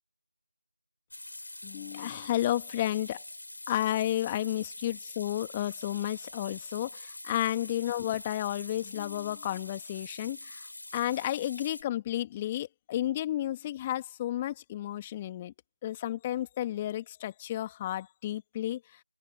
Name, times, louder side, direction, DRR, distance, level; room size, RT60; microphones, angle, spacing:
sound 1, 1.1-11.8, left 2 dB, 50° left, 6.5 m, -45 dB
voice 1, 1.6-3.2 3.7-10.7 10.9-15.5 15.8-18.8, left 13 dB, 10° left, 2.1 m, -32 dB
figure-of-eight pair, 170°, 0 cm